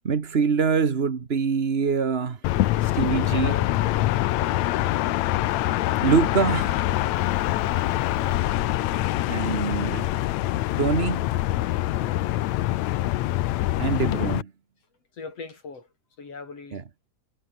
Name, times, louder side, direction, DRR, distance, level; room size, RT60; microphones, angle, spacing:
voice 1, 0.0-2.4 2.8-3.6 6.0-7.0 9.3-10.2 10.8-11.2 13.8-14.5 16.7-16.8, right 5 dB, 60° right, 0.6 m, -24 dB
sound 1, 2.4-14.4, left 15 dB, 75° left, 2.1 m, -24 dB
voice 2, 3.3-3.7 9.3-9.7 11.9-12.5 15.2-15.9 16.2-16.8, left 4 dB, 55° left, 6.0 m, -41 dB
omnidirectional pair, 3.3 m